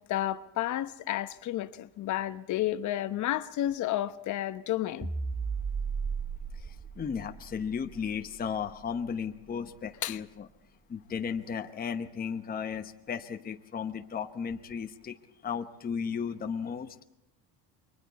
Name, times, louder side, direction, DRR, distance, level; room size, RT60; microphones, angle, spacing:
voice 1, 0.0-5.1 10.0-10.2, left 13 dB, 50° left, 1.0 m, -31 dB
sound 1, 5.0-9.5, right 5 dB, 10° right, 0.7 m, -36 dB
voice 2, 7.0-10.5 10.9-15.1 15.4-16.9, left 6 dB, 25° left, 1.0 m, -35 dB
29.5 x 23.0 x 4.2 m
cardioid pair, 125°, 38 cm